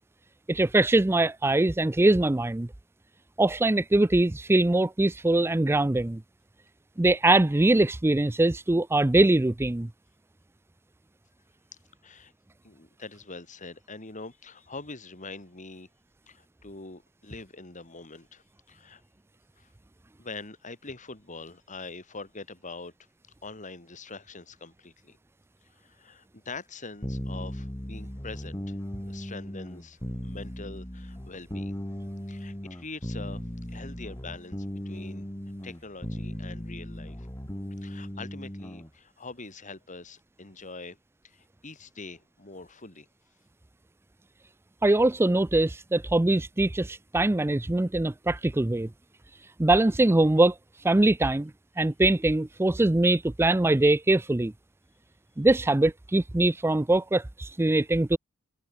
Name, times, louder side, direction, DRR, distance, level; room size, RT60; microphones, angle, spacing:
voice 1, 0.5-2.7 3.4-6.2 7.0-9.9 44.8-48.9 49.6-50.6 50.8-51.5 51.8-54.5 55.4-58.2, right 2 dB, 10° right, 0.4 m, -22 dB
voice 2, 12.6-15.9 16.3-19.0 19.6-19.7 20.2-22.9 23.4-25.2 25.7-28.8 29.1-31.8 32.3-33.4 33.7-35.3 35.6-37.3 37.8-41.0 41.2-43.1, left 3 dB, 40° left, 3.5 m, -44 dB
sound 1, 27.0-38.9, equal, 15° left, 1.9 m, -37 dB
head